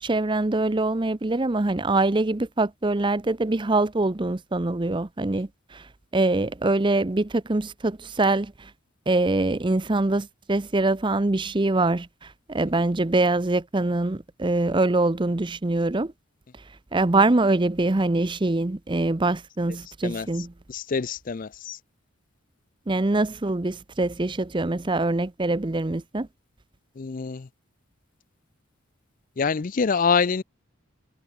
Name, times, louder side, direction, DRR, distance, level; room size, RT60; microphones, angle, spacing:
voice 1, 0.0-5.8 6.1-8.7 9.1-16.1 16.9-20.5 22.9-26.3, right 2 dB, 25° right, 0.6 m, -24 dB
voice 2, 20.7-21.8 27.0-27.5 29.4-30.4, left 5 dB, 40° left, 0.5 m, -25 dB
head